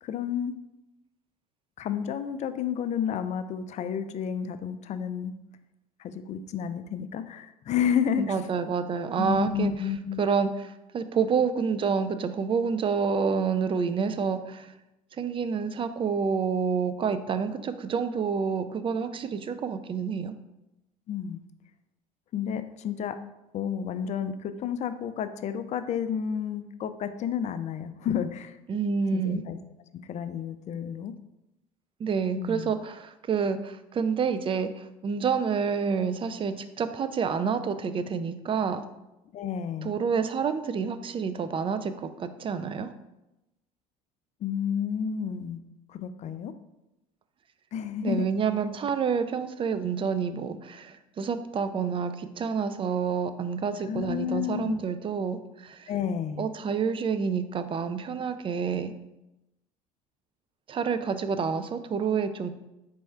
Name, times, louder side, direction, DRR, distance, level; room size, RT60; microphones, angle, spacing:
voice 1, 0.0-0.6 1.8-5.3 6.0-8.5 9.2-10.2 21.1-21.4 22.3-23.2 23.5-28.6 29.1-29.6 30.1-31.1 32.4-32.7 39.3-40.0 44.4-45.6 45.9-46.5 47.7-48.3 53.9-54.8 55.9-56.5, left 8 dB, 40° left, 11 dB, 0.4 m, -31 dB
voice 2, 8.2-9.7 10.2-10.7 10.9-14.7 15.2-20.3 28.7-29.4 32.0-38.8 39.8-42.9 48.0-55.9 56.4-58.9 60.7-62.5, right 6 dB, 30° right, 11 dB, 0.4 m, -28 dB
4.3 x 3.4 x 3.2 m, 0.94 s
hypercardioid pair, 70°, 19 cm